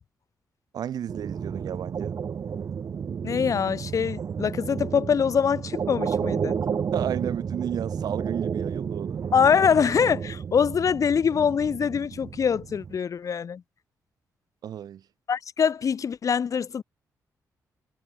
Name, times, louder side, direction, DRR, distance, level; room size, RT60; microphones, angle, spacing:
voice 1, 0.7-2.2 6.6-9.2 14.6-15.0, right 9 dB, 80° right, 7.7 m, -33 dB
sound 1, 1.1-13.0, right 7 dB, 55° right, 3.7 m, -32 dB
voice 2, 3.2-6.6 9.3-13.6 15.3-16.8, left 7 dB, 55° left, 7.6 m, -24 dB
cardioid pair, 100°, 7 cm